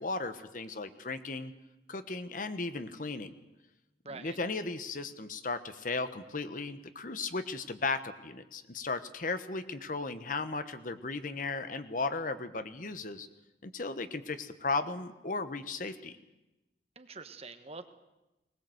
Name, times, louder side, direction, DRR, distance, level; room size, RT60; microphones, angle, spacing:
voice 1, 0.0-1.5 1.9-3.3 4.1-13.3 13.6-16.1, left 3 dB, 50° left, 11 dB, 1.2 m, -36 dB
voice 2, 4.0-4.4 17.0-17.9, right 3 dB, 35° right, 9 dB, 1.3 m, -45 dB
20.5 x 20.0 x 7.9 m, 1.0 s
head